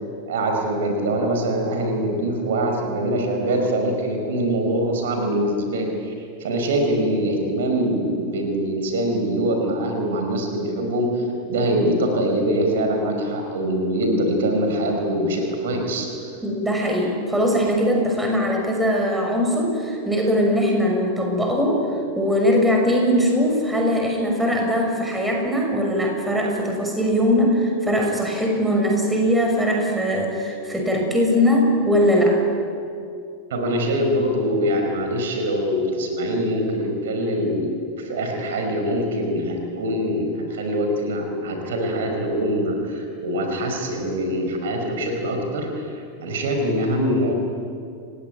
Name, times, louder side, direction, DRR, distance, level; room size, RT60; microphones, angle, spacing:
voice 1, 0.3-6.1 6.4-16.3 33.5-45.9 46.2-47.3, right 1 dB, 60° right, 3 dB, 5.0 m, -23 dB
voice 2, 16.4-21.8 22.1-32.4, equal, 5° right, 1 dB, 6.4 m, -20 dB
30.0 x 17.5 x 9.5 m, 2.4 s
figure-of-eight pair, 90°, 0 cm